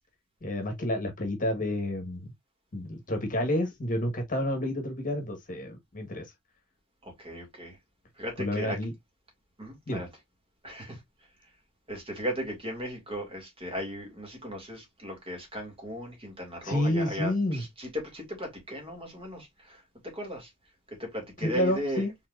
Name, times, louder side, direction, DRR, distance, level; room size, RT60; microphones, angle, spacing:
voice 1, 0.4-2.3 2.7-6.3 8.4-8.9 9.9-10.0 16.6-17.6 21.4-22.1, left 1 dB, 35° left, 1.3 m, -29 dB
voice 2, 7.0-7.8 8.2-8.8 9.6-10.1 10.6-11.0 11.9-20.5 20.9-22.0, equal, 25° right, 2.2 m, -37 dB
4.5 x 3.8 x 2.4 m
head